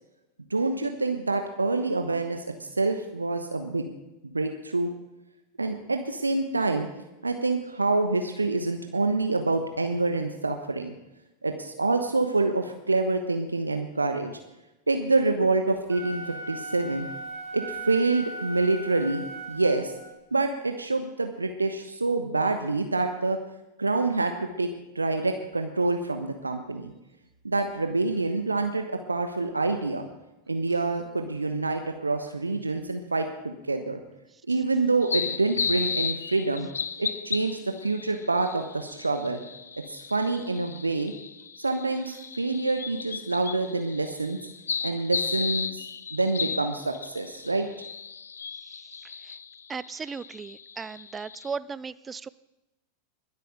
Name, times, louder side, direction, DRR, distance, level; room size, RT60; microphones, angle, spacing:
voice 1, 0.5-3.9 4.2-4.9 5.6-6.9 7.2-10.9 11.4-14.4 14.9-17.1 17.5-19.9 20.3-23.4 23.8-24.7 24.9-26.9 27.4-30.1 30.5-34.0 34.5-36.7 37.0-39.4 39.9-41.1 41.6-44.4 44.8-45.8 46.1-47.7, right 3 dB, 80° right, 6 dB, 1.1 m, -27 dB
Wind instrument woodwind instrument, 15.9-20.2, right 2 dB, 40° right, 3.3 m, -38 dB
sound 1, 35.0-51.6, left 6 dB, 70° left, 0.5 m, -35 dB
voice 2, 49.7-52.3, right 5 dB, 15° right, 19 dB, 0.4 m, -36 dB
21.0 x 8.3 x 4.9 m, 0.97 s
figure-of-eight pair, 90°, 0 cm